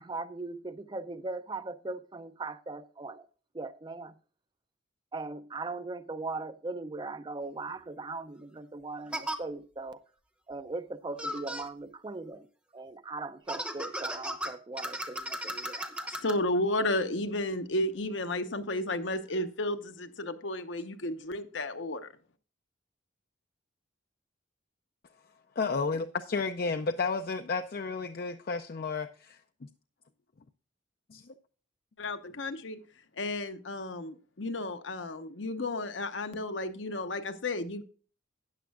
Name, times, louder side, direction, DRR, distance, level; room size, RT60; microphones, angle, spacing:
voice 1, 0.0-3.3 3.5-4.1 5.1-10.0 10.5-12.5 12.7-16.1, right 3 dB, 25° right, 0.4 m, -39 dB
sound 1, 7.7-7.8 9.1-9.4 11.2-11.7 13.5-16.3, equal, 5° right, 0.8 m, -36 dB
voice 2, 16.1-22.1 32.0-32.8 33.2-37.8, left 1 dB, 75° left, 0.9 m, -33 dB
voice 3, 25.6-29.7 31.1-31.3, left 4 dB, 50° left, 0.4 m, -32 dB
12.5 x 9.3 x 2.4 m
head